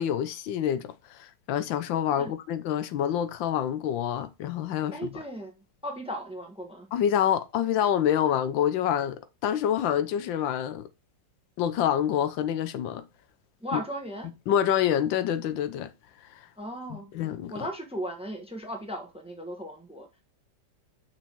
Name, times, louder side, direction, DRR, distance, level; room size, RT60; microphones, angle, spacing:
voice 1, 0.0-5.1 6.9-10.9 11.6-13.0 13.7-13.8 14.5-15.9 16.3-16.5 16.9-17.7, left 10 dB, 85° left, 1.5 m, -27 dB
voice 2, 4.9-6.9 13.6-14.3 16.6-17.2 17.5-20.2, equal, 5° right, 0.9 m, -37 dB
6.1 x 5.2 x 4.4 m
omnidirectional pair, 2.0 m